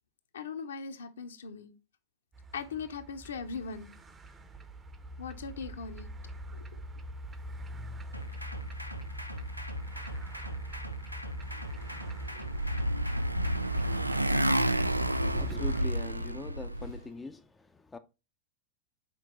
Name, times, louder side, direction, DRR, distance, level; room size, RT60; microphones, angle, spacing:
voice 1, 0.3-1.7 2.5-3.9 5.2-6.1 6.5-6.8 15.5-15.7, left 5 dB, 65° left, 0.9 m, -40 dB
sound 1, 2.3-15.8, right 1 dB, 20° right, 0.8 m, -42 dB
sound 2, 8.1-14.3, right 1 dB, 90° left, 0.6 m, -41 dB
Motorcycle, 12.0-17.0, right 1 dB, 85° right, 0.3 m, -29 dB
voice 2, 15.1-18.0, left 3 dB, 10° left, 0.5 m, -42 dB
6.3 x 4.4 x 4.3 m
figure-of-eight pair, 90°, 0 cm